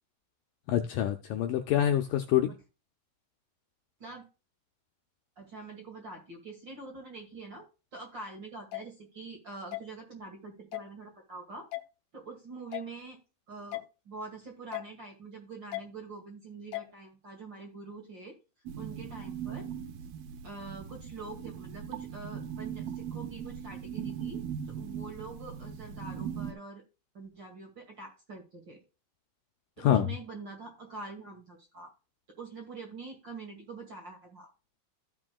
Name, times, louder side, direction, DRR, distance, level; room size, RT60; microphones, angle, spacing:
voice 1, 0.7-2.5 29.8-30.1, left 11 dB, 75° left, 2.1 m, -26 dB
voice 2, 5.4-7.7 7.9-11.7 12.1-13.2 13.5-18.4 18.8-19.7 20.4-26.8 27.1-28.8 29.8-31.9 32.4-34.5, right 3 dB, 35° right, 2.2 m, -45 dB
sound 1, 8.7-8.8 9.7-9.8 10.7-10.9 11.7-11.8 12.7-12.9 13.7-13.8 14.7-14.9 15.7-15.8 16.7-16.9, left 21 dB, 90° left, 1.9 m, -36 dB
sound 2, 18.7-26.5, right 8 dB, 75° right, 2.8 m, -39 dB
15.0 x 6.2 x 2.3 m
omnidirectional pair, 4.5 m